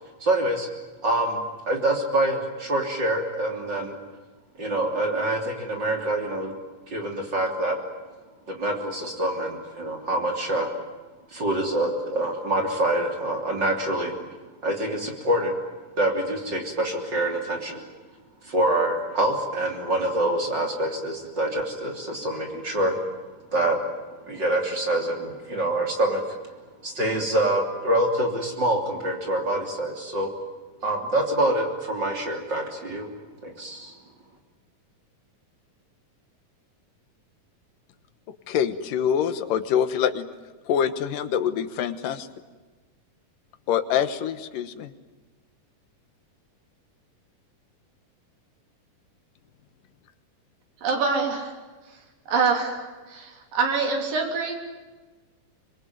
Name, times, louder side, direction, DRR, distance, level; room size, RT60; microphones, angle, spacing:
voice 1, 0.2-0.7 1.0-1.4 1.7-4.0 4.6-6.6 6.9-7.8 8.5-10.7 11.3-14.3 14.6-15.5 16.0-17.8 18.4-22.9 23.5-23.8 24.3-26.2 26.8-30.3 30.8-33.1 33.4-33.9, right 1 dB, 35° right, 2 dB, 3.5 m, -25 dB
voice 2, 38.5-40.3 40.7-42.3 43.7-44.9, left 8 dB, 80° left, 11 dB, 2.9 m, -25 dB
voice 3, 50.8-51.5 52.3-52.8 53.1-54.6, right 4 dB, 90° right, 3 dB, 5.3 m, -25 dB
25.5 x 22.0 x 9.4 m, 1.3 s
omnidirectional pair, 3.8 m